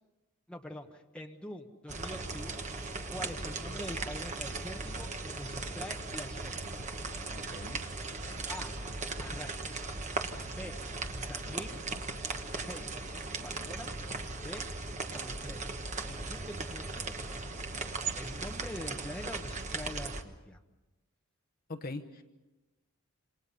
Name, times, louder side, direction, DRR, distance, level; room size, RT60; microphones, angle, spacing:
voice 1, 0.5-2.6 3.1-6.8 8.5-8.8 9.2-9.8 10.5-10.8 11.3-11.8 12.7-12.9 13.4-13.9 14.3-14.6 15.1-15.7 16.0-17.3 18.1-20.6, left 1 dB, 5° left, 2 dB, 1.3 m, -44 dB
sound 1, 1.9-20.2, right 3 dB, 30° right, 1.3 m, -38 dB
voice 2, 7.3-7.8 21.7-22.2, left 2 dB, 40° left, 7 dB, 1.1 m, -41 dB
27.5 x 27.5 x 5.5 m, 1.1 s
head